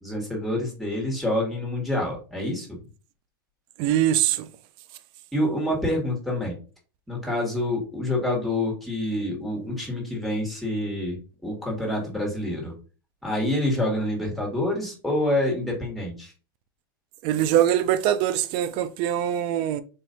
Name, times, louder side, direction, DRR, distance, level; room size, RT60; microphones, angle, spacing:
voice 1, 0.0-2.7 5.3-6.6 7.1-11.2 11.4-12.7 13.2-16.3, left 1 dB, ahead, 1.9 m, -27 dB
voice 2, 3.8-4.5 17.2-19.8, right 11 dB, 45° right, 0.5 m, -23 dB
4.5 x 3.1 x 2.7 m
supercardioid pair, 130°, 12 cm